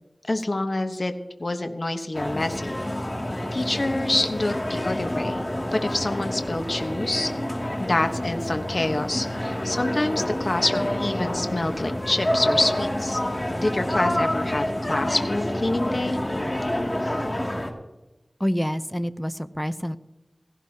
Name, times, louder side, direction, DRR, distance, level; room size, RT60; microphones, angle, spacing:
voice 1, 0.3-1.1 1.4-2.8 3.5-5.4 5.7-7.3 7.8-13.2 13.6-16.2, left 2 dB, 55° left, 6 dB, 1.2 m, -26 dB
sound 1, 2.1-17.7, left 1 dB, 30° left, 2.5 m, -28 dB
voice 2, 18.4-20.0, equal, 5° left, 11 dB, 0.7 m, -27 dB
17.0 x 16.0 x 2.9 m, 1.0 s
wide cardioid pair, 45°, 0 cm